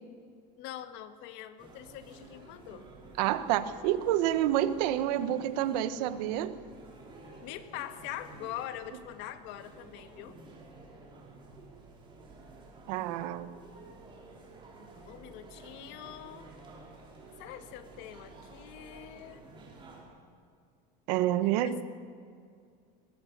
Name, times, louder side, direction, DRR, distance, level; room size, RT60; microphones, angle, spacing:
voice 1, 0.6-2.9 7.4-10.4 15.1-16.5 17.4-19.4 21.6-21.8, left 12 dB, 60° left, 9 dB, 1.6 m, -43 dB
sound 1, 1.6-20.0, right 3 dB, 25° right, 5.0 m, -52 dB
voice 2, 3.2-6.5 12.9-13.5 21.1-21.8, right 12 dB, 75° right, 12 dB, 1.3 m, -28 dB
22.0 x 21.0 x 6.8 m, 2.3 s
cardioid pair, 150°, 21 cm